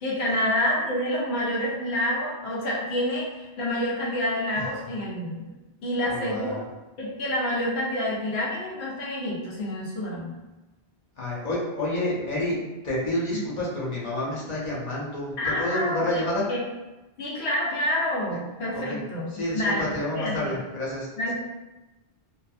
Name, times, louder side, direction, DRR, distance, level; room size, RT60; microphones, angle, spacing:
voice 1, 0.0-5.4 5.8-6.6 7.0-10.3 13.3-13.4 15.4-16.2 16.5-16.6 17.2-20.5 21.2-21.3, left 1 dB, 85° left, -4 dB, 1.0 m, -28 dB
voice 2, 6.1-6.6 11.2-12.6 12.8-16.5 18.3-18.4 18.7-19.0 19.3-21.1, left 1 dB, 45° left, -6 dB, 0.7 m, -29 dB
2.5 x 2.4 x 2.3 m, 1.1 s
omnidirectional pair, 1.1 m